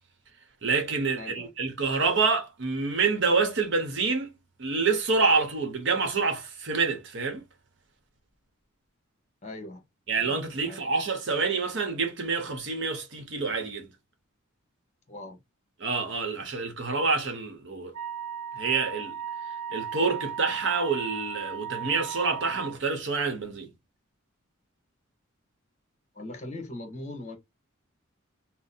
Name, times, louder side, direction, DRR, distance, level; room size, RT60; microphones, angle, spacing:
voice 1, 0.6-4.3 4.6-7.4 10.1-13.9 15.8-17.9 18.6-19.1 19.7-23.7, right 4 dB, 60° right, 0.9 m, -27 dB
voice 2, 1.1-1.5 9.4-9.8 10.2-10.8 15.1-15.4 26.1-27.4, left 2 dB, 35° left, 0.9 m, -40 dB
Wind instrument woodwind instrument, 17.9-22.8, right 8 dB, 85° right, 0.6 m, -36 dB
2.7 x 2.0 x 4.0 m
head